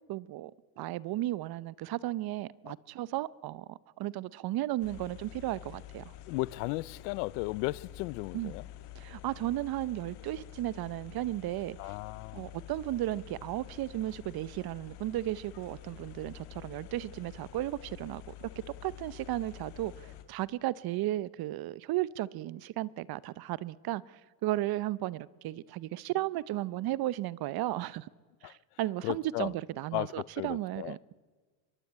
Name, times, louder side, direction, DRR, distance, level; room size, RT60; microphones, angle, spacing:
voice 1, 0.1-0.5 0.8-6.0 8.3-8.5 9.0-11.8 12.3-18.5 18.8-28.1 28.4-31.1, right 15 dB, 55° right, 0.8 m, -34 dB
sound 1, 4.8-20.2, left 12 dB, 65° left, 2.6 m, -48 dB
voice 2, 6.3-8.7 11.8-12.5 28.4-28.6 29.0-29.5 29.9-31.1, left 22 dB, 85° left, 0.7 m, -35 dB
24.0 x 21.5 x 8.7 m
supercardioid pair, 110°, 45 cm